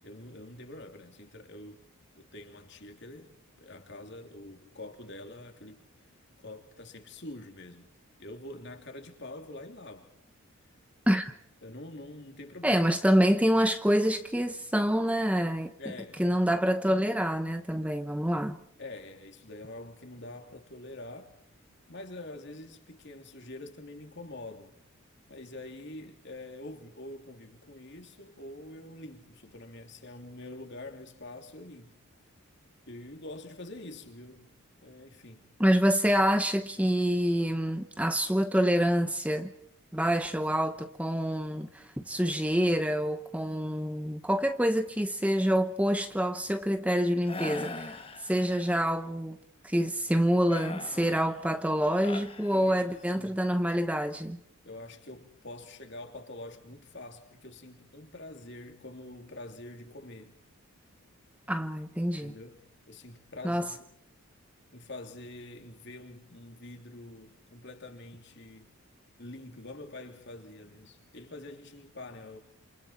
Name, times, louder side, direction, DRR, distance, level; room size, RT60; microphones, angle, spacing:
voice 1, 0.0-1.8 2.1-3.3 3.6-5.8 6.4-7.9 8.2-10.1 11.6-12.9 15.8-16.2 18.3-18.5 18.8-21.4 21.9-24.7 25.3-32.0 32.9-34.5 34.8-35.5 40.8-40.9 52.5-53.4 54.6-60.4 62.2-63.9 64.7-68.7 69.2-72.4, left 2 dB, 50° left, 3.0 m, -45 dB
voice 2, 12.6-15.7 16.2-18.6 35.6-39.5 39.9-48.0 48.2-49.4 49.6-54.4 61.5-62.3 63.4-63.7, equal, 5° right, 0.9 m, -27 dB
sound 1, 47.3-48.8 50.5-53.2, left 3 dB, 25° left, 1.4 m, -41 dB
28.5 x 27.5 x 4.4 m
head